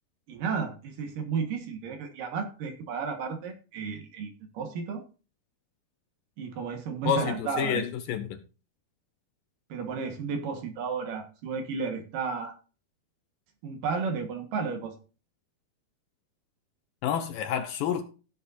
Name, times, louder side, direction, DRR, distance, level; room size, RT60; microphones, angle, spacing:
voice 1, 0.3-5.0 6.4-7.8 9.7-12.5 13.6-14.9, right 5 dB, 65° right, 2.8 m, -33 dB
voice 2, 7.1-8.4 17.0-18.0, left 8 dB, 75° left, 2.2 m, -29 dB
16.5 x 7.3 x 2.6 m
omnidirectional pair, 4.4 m